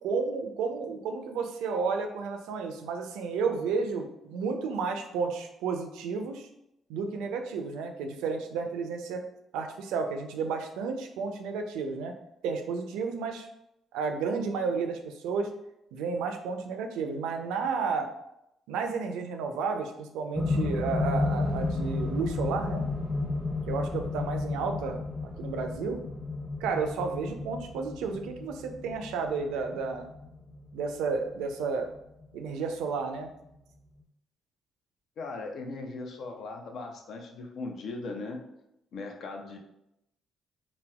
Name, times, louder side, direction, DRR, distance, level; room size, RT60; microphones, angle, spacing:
voice 1, 0.0-6.5 6.9-9.2 9.5-12.1 12.4-13.5 13.9-15.5 15.9-18.1 18.7-22.8 23.7-25.0 25.4-26.0 26.6-30.1 30.7-31.9 32.3-33.3, right 5 dB, 80° right, 5 dB, 0.3 m, -32 dB
sound 1, 20.3-32.5 33.4-33.5, left 3 dB, 25° left, 0.7 m, -32 dB
voice 2, 35.2-38.4 38.9-39.6, left 3 dB, 65° left, 3 dB, 0.5 m, -38 dB
4.0 x 2.1 x 2.2 m, 0.83 s
hypercardioid pair, 50°, 0 cm